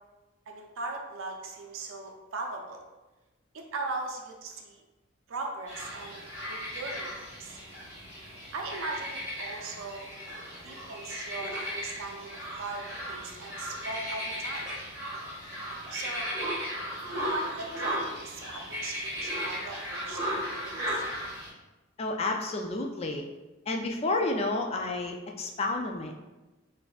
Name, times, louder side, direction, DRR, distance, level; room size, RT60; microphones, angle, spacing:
voice 1, 0.5-2.8 3.5-4.8 5.3-6.2 6.5-7.1 7.4-7.6 8.5-10.1 10.6-14.7 15.9-16.3 17.0-21.0, right 3 dB, 80° right, 1 dB, 0.5 m, -39 dB
sound 1, 5.7-21.5, equal, 15° right, 1.4 m, -36 dB
voice 2, 22.0-23.2 23.7-26.1, left 2 dB, 30° left, 2 dB, 0.3 m, -30 dB
4.1 x 2.6 x 2.3 m, 1.1 s
head